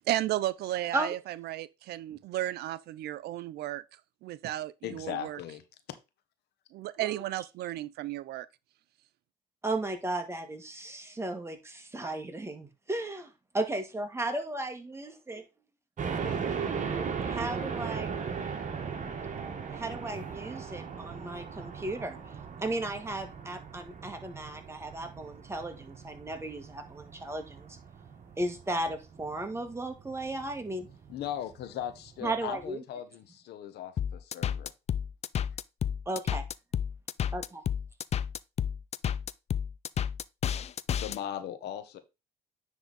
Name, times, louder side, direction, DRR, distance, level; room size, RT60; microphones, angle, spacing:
voice 1, 0.1-3.8 4.2-5.4 6.7-8.5, right 14 dB, 70° right, 0.4 m, -34 dB
voice 2, 4.8-5.6 31.1-34.7 40.9-42.0, left 10 dB, 75° left, 1.1 m, -38 dB
voice 3, 9.6-15.4 17.2-18.1 19.7-22.2 22.6-27.8 28.4-30.9 32.2-32.8 36.0-36.4 37.3-37.6, right 2 dB, 15° right, 1.6 m, -35 dB
sound 1, 16.0-32.7, right 6 dB, 45° right, 1.4 m, -38 dB
sound 2, 34.0-41.2, left 9 dB, 40° left, 0.4 m, -31 dB
9.7 x 3.6 x 4.1 m
cardioid pair, 85°, 17 cm